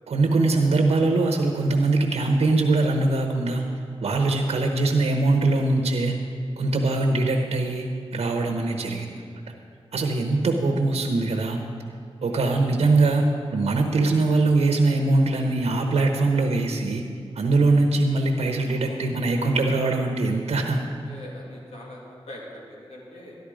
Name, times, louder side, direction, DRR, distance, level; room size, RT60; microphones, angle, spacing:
voice 1, 0.1-3.6 4.0-6.1 6.6-9.2 9.9-11.6 12.2-17.0 17.4-20.8, right 2 dB, 80° right, 2 dB, 1.1 m, -22 dB
voice 2, 4.4-4.8 8.7-8.9 10.0-10.5 12.3-12.6 18.7-19.1 21.1-22.0 22.3-23.4, left 1 dB, 80° left, -3 dB, 2.9 m, -44 dB
13.0 x 12.0 x 5.0 m, 2.3 s
cardioid pair, 55°, 11 cm